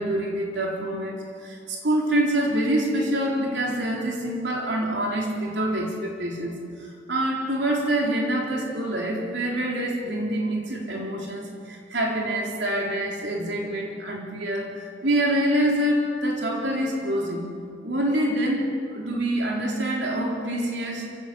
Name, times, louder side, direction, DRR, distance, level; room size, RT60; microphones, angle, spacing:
voice 1, 0.0-17.5 17.8-21.1, right 1 dB, 60° right, -1 dB, 4.0 m, -26 dB
27.0 x 16.5 x 8.5 m, 2.3 s
head